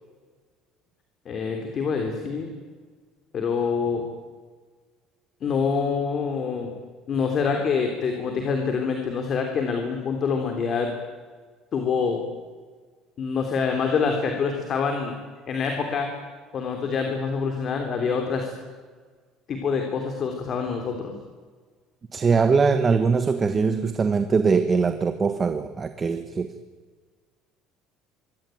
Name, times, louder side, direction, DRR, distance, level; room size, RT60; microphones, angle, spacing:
voice 1, 1.3-2.5 3.3-4.0 5.4-6.7 7.1-10.9 11.7-12.2 13.2-15.2 15.5-16.1 16.5-18.5 19.5-21.1, left 5 dB, 35° left, 4 dB, 3.5 m, -26 dB
voice 2, 22.1-26.5, right 5 dB, 20° right, 9 dB, 1.2 m, -22 dB
26.0 x 24.0 x 9.3 m, 1.5 s
cardioid pair, 170°, 0 cm